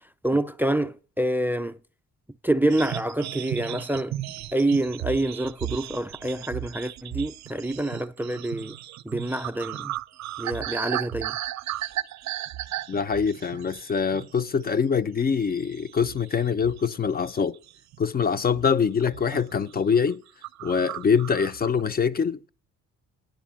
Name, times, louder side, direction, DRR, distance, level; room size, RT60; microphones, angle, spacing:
voice 1, 0.2-1.8 2.4-4.1 4.5-8.8 9.0-9.9 10.4-11.4, right 1 dB, 5° right, 0.4 m, -27 dB
sound 1, 2.7-14.4 14.7-15.0 15.4-16.9 17.2-18.0 18.5-18.8 19.0-19.4 19.7-19.8 20.1-20.2 20.4-21.8, right 14 dB, 65° right, 0.5 m, -35 dB
voice 2, 12.9-17.6 18.0-20.2 20.6-22.5, left 6 dB, 30° left, 0.6 m, -24 dB
10.5 x 4.9 x 7.4 m
cardioid pair, 90°, 30 cm